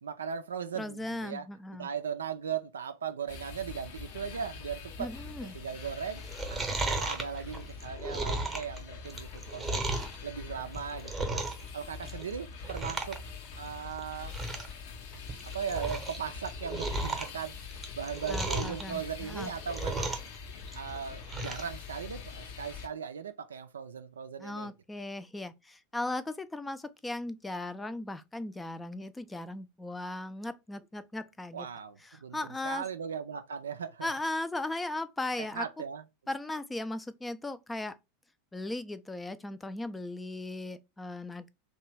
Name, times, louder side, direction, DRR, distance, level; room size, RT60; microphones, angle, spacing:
voice 1, 0.0-1.5 1.8-5.1 5.4-6.2 6.5-9.8 10.2-11.4 11.7-13.2 13.6-14.3 15.5-20.1 20.7-24.7 31.5-34.1 35.4-36.0, right 7 dB, 85° right, 0.4 m, -38 dB
voice 2, 0.7-1.9 5.0-5.6 18.3-19.5 24.4-31.7 32.0-32.8 34.0-35.6 36.3-38.0 38.5-41.5, left 2 dB, 10° left, 0.3 m, -37 dB
sound 1, 3.3-22.9, left 5 dB, 60° left, 0.6 m, -44 dB
Chewing mastication, 6.2-10.2 10.6-11.7 12.0-12.3 12.6-13.2 13.5-13.6 14.0-14.1 14.3-14.7 15.1-16.2 16.5-18.8 19.3-20.4 20.6-21.7 22.1-22.2, right 2 dB, 20° right, 0.8 m, -34 dB
2.9 x 2.2 x 3.2 m
hypercardioid pair, 90°, 0 cm